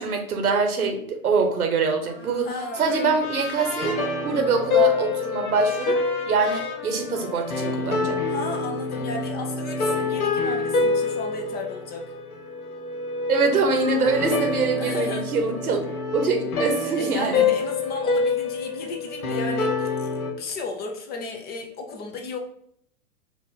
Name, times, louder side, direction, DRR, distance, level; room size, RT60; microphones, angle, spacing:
voice 1, 0.0-2.5 2.8-3.9 4.2-6.0 6.3-8.2 13.3-15.9 16.1-17.5, right 4 dB, 85° right, 4 dB, 1.2 m, -24 dB
Trumpet, 2.0-8.3, left 4 dB, 50° left, 1.2 m, -37 dB
voice 2, 2.4-2.9 8.3-12.1 14.8-15.3 16.9-20.1 20.4-22.4, left 3 dB, 20° left, 2 dB, 0.6 m, -34 dB
sound 1, 2.9-20.3, left 4 dB, 80° left, 1.2 m, -27 dB
4.6 x 2.5 x 4.1 m, 0.68 s
hypercardioid pair, 110°, 43 cm